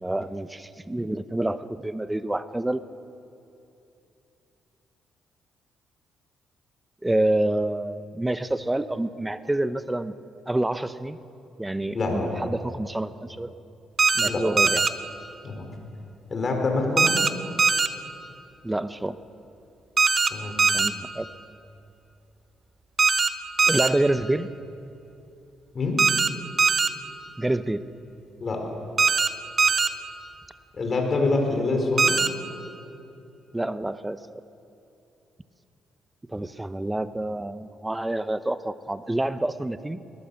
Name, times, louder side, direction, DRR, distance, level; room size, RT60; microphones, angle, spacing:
voice 1, 0.0-2.8 7.0-10.1 10.5-11.2 11.6-13.5 14.1-14.8 18.6-19.1 20.7-21.3 23.7-24.5 27.4-27.8 33.5-34.4 36.3-40.0, right 1 dB, 10° right, 13 dB, 0.7 m, -27 dB
voice 2, 11.9-12.3 14.2-14.4 15.4-15.7 16.3-17.1 20.3-20.6 25.7-26.0 28.4-28.6 30.7-32.2, left 3 dB, 40° left, 2 dB, 4.6 m, -25 dB
sound 1, 14.0-14.3 14.6-14.9 17.0-17.3 17.6-17.9 20.0-20.3 20.6-20.9 23.0-23.3 23.6-23.9 26.0-26.3 26.6-26.9 29.0-29.3 29.6-29.9 32.0-32.3, right 5 dB, 40° right, 1.0 m, -20 dB
21.0 x 19.0 x 7.0 m, 2.8 s
cardioid pair, 90°, 0 cm